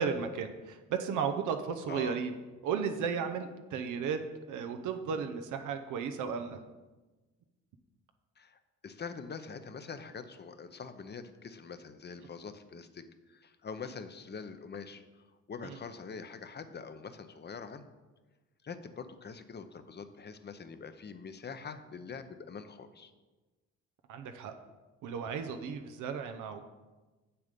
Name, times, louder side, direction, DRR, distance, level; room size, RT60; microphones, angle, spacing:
voice 1, 0.0-2.3 2.6-4.2 4.5-6.6 15.6-15.8 24.1-24.5 25.0-26.6, right 6 dB, 80° right, 7 dB, 0.7 m, -34 dB
voice 2, 1.9-2.2 8.4-17.8 18.6-23.1, left 5 dB, 35° left, 10 dB, 0.8 m, -44 dB
7.5 x 6.9 x 5.2 m, 1.2 s
cardioid pair, 90°, 30 cm